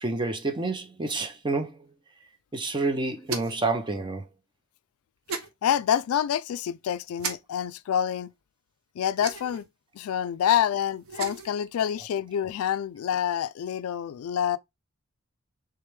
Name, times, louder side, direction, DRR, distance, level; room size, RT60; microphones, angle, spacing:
voice 1, 0.0-1.8 2.5-4.2, right 3 dB, 20° right, 0.6 m, -28 dB
sound 1, 3.2-3.7 5.3-5.5 7.2-7.3 9.2-9.6 11.0-11.5, right 5 dB, 80° right, 0.7 m, -34 dB
voice 2, 5.6-8.3 9.0-9.6 10.0-14.6, left 9 dB, 85° left, 0.3 m, -27 dB
3.4 x 3.3 x 3.2 m
head